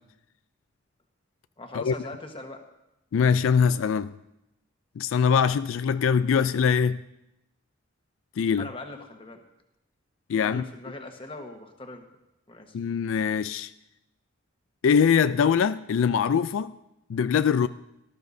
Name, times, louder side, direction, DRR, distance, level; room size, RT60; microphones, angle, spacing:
voice 1, 1.6-2.6 8.6-9.4 10.4-12.1 12.5-12.7, left 2 dB, 25° left, 1.2 m, -40 dB
voice 2, 3.1-4.1 5.0-7.0 8.4-8.7 10.3-10.7 12.7-13.7 14.8-16.7 17.1-17.7, left 6 dB, 80° left, 0.3 m, -22 dB
18.5 x 13.5 x 2.7 m
head